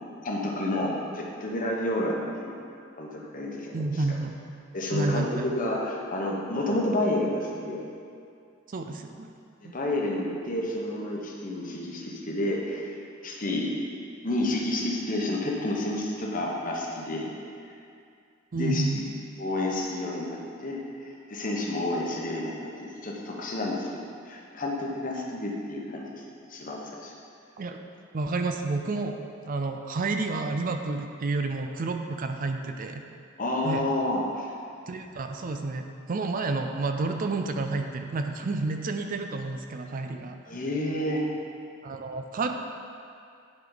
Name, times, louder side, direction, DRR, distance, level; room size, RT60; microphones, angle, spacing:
voice 1, 0.2-2.6 3.0-4.0 4.7-7.9 9.6-13.0 13.2-13.7 14.2-17.2 18.5-19.1 19.4-26.2 26.5-27.1 33.4-34.5 40.5-41.3, left 1 dB, 45° left, -1 dB, 1.1 m, -30 dB
voice 2, 3.7-4.4 4.9-5.4 8.7-9.3 9.6-9.7 18.5-19.0 27.6-27.8 28.1-29.2 29.4-33.0 33.6-33.8 34.9-35.8 36.1-40.4 41.8-42.5, right 3 dB, 45° right, 5 dB, 0.5 m, -30 dB
10.5 x 5.1 x 4.0 m, 2.4 s
head